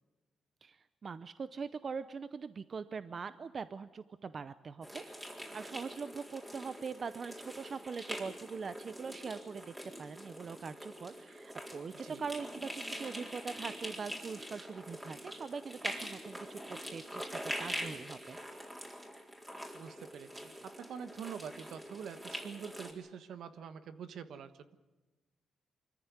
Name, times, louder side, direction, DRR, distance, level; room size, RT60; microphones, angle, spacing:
voice 1, 0.6-5.0 5.5-18.6, right 5 dB, 45° right, 14 dB, 0.6 m, -42 dB
sound 1, 4.8-22.9, equal, 10° right, 4.0 m, -44 dB
voice 2, 19.7-24.5, right 7 dB, 75° right, 11 dB, 1.3 m, -45 dB
24.0 x 14.5 x 9.5 m, 1.2 s
cardioid pair, 95°, 0 cm